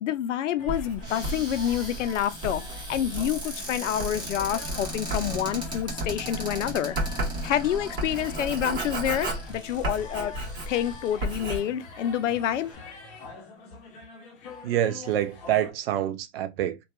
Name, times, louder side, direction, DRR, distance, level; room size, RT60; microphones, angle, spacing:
voice 1, 0.0-2.6 2.9-7.0 7.4-10.4 10.7-12.7, left 10 dB, 80° left, 0.5 m, -28 dB
sound 1, 0.6-15.7, left 3 dB, 20° left, 0.5 m, -45 dB
Writing, 0.7-10.9 11.2-11.6, right 1 dB, 35° right, 1.4 m, -33 dB
Cupboard open or close, 1.0-11.4 12.0-12.1 12.4-12.7, right 1 dB, 10° right, 1.0 m, -39 dB
voice 2, 14.6-16.8, right 11 dB, 55° right, 0.5 m, -26 dB
2.6 x 2.3 x 2.2 m
hypercardioid pair, 135°, 36 cm